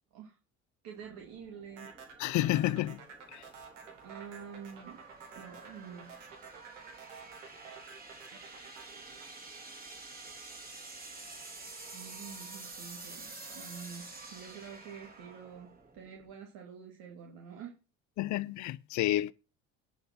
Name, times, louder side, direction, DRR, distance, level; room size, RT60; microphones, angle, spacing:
voice 1, 0.8-1.9 4.0-5.0 5.4-6.2 11.9-17.7, right 7 dB, 70° right, 2.3 m, -47 dB
sound 1, 1.0-16.4, right 3 dB, 25° right, 3.7 m, -49 dB
sound 2, 1.8-10.1, right 6 dB, 90° right, 2.1 m, -51 dB
voice 2, 2.2-3.0 3.3-3.4 18.2-19.3, left 15 dB, 55° left, 0.7 m, -30 dB
10.5 x 5.3 x 5.9 m
hypercardioid pair, 70°, 35 cm